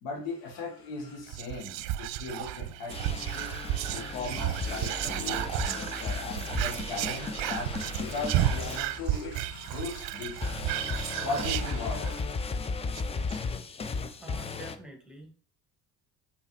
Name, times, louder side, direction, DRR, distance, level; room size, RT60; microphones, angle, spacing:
voice 1, 0.0-3.5 3.9-12.5, left 3 dB, 60° left, 1 dB, 1.5 m, -38 dB
Whispering, 1.3-12.3 12.6-12.7 13.0-13.4, right 13 dB, 55° right, 0.5 m, -33 dB
sound 1, 2.3-12.9, left 3 dB, 45° left, 1.0 m, -56 dB
sound 2, 2.9-9.6 10.4-14.8, left 4 dB, 15° left, 0.4 m, -35 dB
voice 2, 14.2-15.4, right 1 dB, ahead, 1 dB, 1.7 m, -47 dB
6.5 x 5.6 x 3.0 m, 0.43 s
figure-of-eight pair, 50°, 49 cm